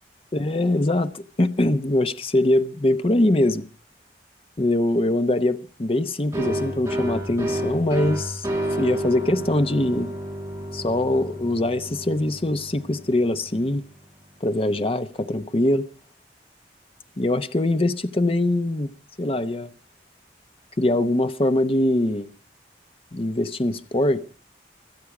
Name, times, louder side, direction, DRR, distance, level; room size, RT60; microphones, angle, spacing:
voice 1, 0.3-3.7 4.6-8.5 8.8-10.1 10.7-13.8 14.4-15.8 17.2-18.9 19.2-19.7 20.8-22.3 23.1-24.2, left 1 dB, 30° left, 0.8 m, -22 dB
sound 1, 6.3-13.8, right 1 dB, 15° right, 5.1 m, -30 dB
25.5 x 8.6 x 4.8 m
head